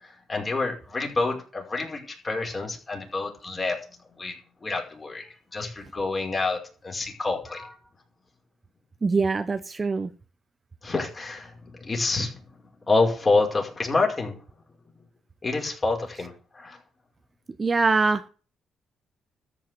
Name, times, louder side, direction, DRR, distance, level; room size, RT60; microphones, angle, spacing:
voice 1, 0.3-3.8 4.2-4.3 4.6-5.3 5.5-7.7 10.8-12.3 12.9-14.4 15.4-16.8, left 3 dB, 30° left, 5.2 m, -27 dB
voice 2, 9.0-10.1 17.6-18.3, right 4 dB, 30° right, 0.9 m, -23 dB
13.5 x 6.0 x 9.1 m
cardioid pair, 90°, 0 cm